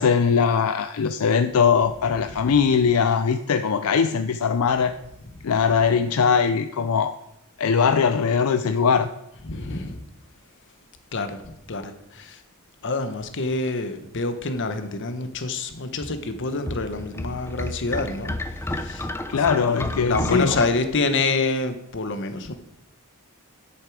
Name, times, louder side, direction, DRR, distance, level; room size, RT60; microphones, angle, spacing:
voice 1, 0.0-4.9 5.4-7.2 7.6-9.1 19.3-20.5, left 6 dB, 80° left, 9 dB, 0.5 m, -21 dB
voice 2, 9.4-10.0 11.1-12.4 12.8-18.4 18.7-19.1 19.6-22.5, left 3 dB, 55° left, 9 dB, 1.1 m, -27 dB
sound 1, 16.0-20.7, left 1 dB, 10° left, 0.5 m, -31 dB
10.0 x 8.3 x 4.8 m, 0.85 s
head